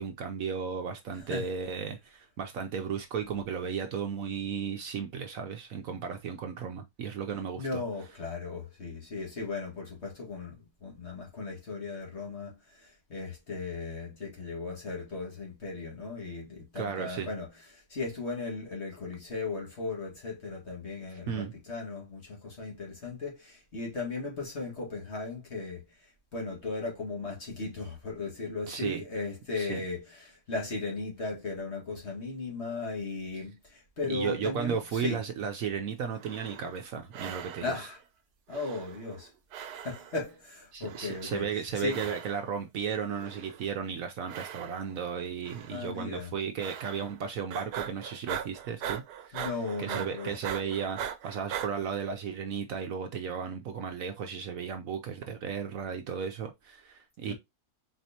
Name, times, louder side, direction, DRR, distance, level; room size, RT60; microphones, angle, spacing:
voice 1, 0.0-7.8 16.7-17.3 21.3-21.5 28.7-29.0 29.6-29.8 34.1-37.8 40.7-49.5 49.8-57.3, right 7 dB, 65° right, 1.0 m, -35 dB
voice 2, 1.1-1.4 7.6-17.5 17.7-35.2 37.6-38.0 38.5-39.3 39.7-41.5 41.8-42.0 45.7-46.3 49.3-50.3 57.3-57.4, left 3 dB, 40° left, 2.0 m, -37 dB
sound 1, 36.1-36.8 37.1-37.9 38.5-39.3 39.5-40.3 40.8-41.5 41.9-42.5 43.1-43.8 44.3-45.0 45.4-45.9 46.6-47.2 47.5-51.7, right 9 dB, 85° right, 1.3 m, -40 dB
4.5 x 4.2 x 2.8 m
omnidirectional pair, 1.7 m